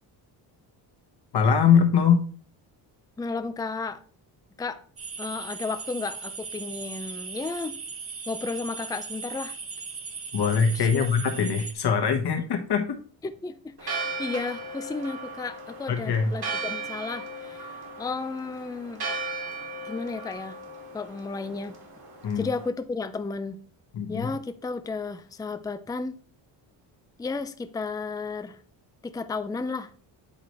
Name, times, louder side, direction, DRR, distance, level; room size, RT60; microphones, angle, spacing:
voice 1, 1.3-2.2 10.3-13.0 15.9-16.3 22.2-22.5 23.9-24.3, left 6 dB, 55° left, 1.4 m, -22 dB
voice 2, 3.2-4.0 4.6-4.8 5.2-7.8 8.3-9.6 10.9-11.1 13.2-17.7 18.0-19.0 19.8-20.6 20.9-21.8 22.4-23.6 24.1-26.2 27.2-28.6 29.0-29.9, left 4 dB, 10° left, 0.5 m, -33 dB
sound 1, 5.0-11.7, right 5 dB, 30° right, 1.1 m, -38 dB
Church bell, 13.8-22.7, right 3 dB, 50° right, 2.5 m, -36 dB
9.6 x 3.9 x 3.1 m
cardioid pair, 80°, 48 cm